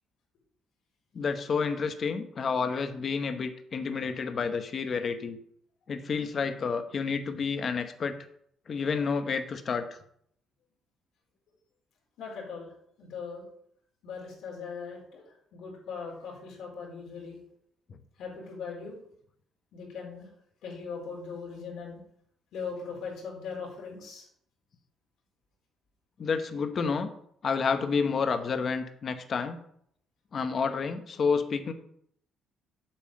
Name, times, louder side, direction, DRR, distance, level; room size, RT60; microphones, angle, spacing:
voice 1, 1.1-5.4 5.9-8.2 8.7-9.9 26.2-27.1 27.4-29.6 30.3-31.7, left 5 dB, 35° left, 9 dB, 0.9 m, -29 dB
voice 2, 12.2-12.7 13.0-13.4 14.0-17.4 18.2-19.0 19.7-20.3 20.6-22.0 22.5-24.3, left 5 dB, 75° left, -2 dB, 3.9 m, -40 dB
8.7 x 5.6 x 7.5 m, 0.68 s
cardioid pair, 155°, 0 cm